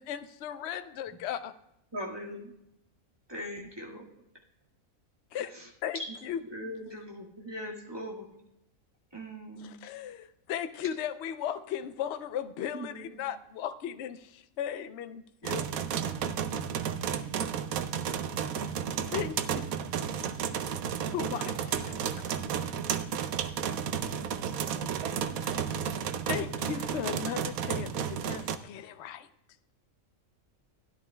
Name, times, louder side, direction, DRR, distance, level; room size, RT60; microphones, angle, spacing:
voice 1, 0.0-1.5 5.3-5.5 5.8-6.4 9.6-15.7 19.1-19.7 21.1-22.5 25.5-25.8 26.3-29.3, left 9 dB, 65° left, 10 dB, 0.8 m, -37 dB
voice 2, 1.9-2.5 3.3-4.1 5.3-6.2 6.5-8.3 9.1-9.8 12.7-13.2, equal, 15° right, -3 dB, 1.8 m, -40 dB
sound 1, 15.4-28.6, right 8 dB, 80° right, 1.1 m, -32 dB
voice 3, 24.4-25.9, right 5 dB, 40° right, 8 dB, 0.6 m, -47 dB
16.5 x 10.5 x 2.2 m, 0.83 s
omnidirectional pair, 1.5 m